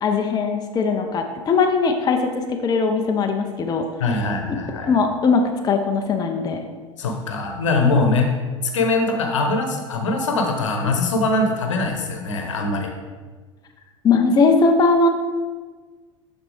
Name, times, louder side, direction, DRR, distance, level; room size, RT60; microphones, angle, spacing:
voice 1, 0.0-3.9 4.9-6.6 14.0-15.1, left 4 dB, 25° left, 4 dB, 0.7 m, -19 dB
voice 2, 4.0-4.9 7.0-8.3 8.7-12.9, left 3 dB, 70° left, 3 dB, 1.1 m, -22 dB
12.0 x 4.2 x 3.4 m, 1.4 s
figure-of-eight pair, 80°, 16 cm